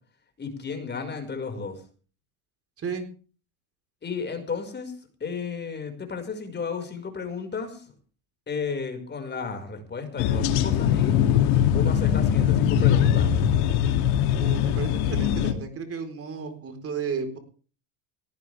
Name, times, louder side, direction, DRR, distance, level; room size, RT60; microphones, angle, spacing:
voice 1, 0.4-1.8 4.0-4.9 5.2-7.9 8.5-11.2 11.7-13.4, left 5 dB, 25° left, 6 dB, 5.6 m, -33 dB
sound 1, 10.2-15.5, left 9 dB, 65° left, 3.0 m, -21 dB
voice 2, 14.4-17.4, right 5 dB, 35° right, 7 dB, 4.4 m, -33 dB
18.0 x 17.5 x 3.6 m, 0.39 s
supercardioid pair, 105°, 41 cm